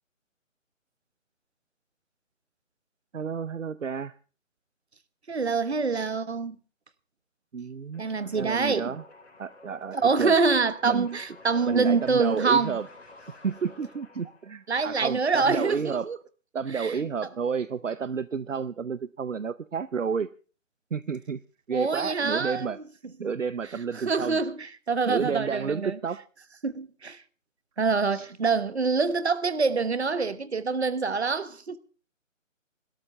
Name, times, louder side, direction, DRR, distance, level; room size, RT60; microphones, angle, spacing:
voice 1, 3.1-4.1 5.9-6.1 7.5-8.0 8.4-9.0 9.4-10.3 10.8-11.1 11.6-12.9 13.4-16.1 16.5-20.3 20.9-21.4 21.7-22.8 23.2-24.4 25.1-26.2 28.1-28.3, right 6 dB, 70° right, 0.7 m, -31 dB
voice 2, 5.3-6.6 8.0-8.9 9.9-12.8 14.7-16.2 16.7-17.0 21.7-22.7 23.9-26.0 26.6-27.2 27.8-31.8, right 4 dB, 55° right, 1.3 m, -25 dB
sound 1, 7.9-14.7, left 3 dB, 55° left, 3.8 m, -50 dB
29.5 x 13.0 x 3.4 m
figure-of-eight pair, 150°, 39 cm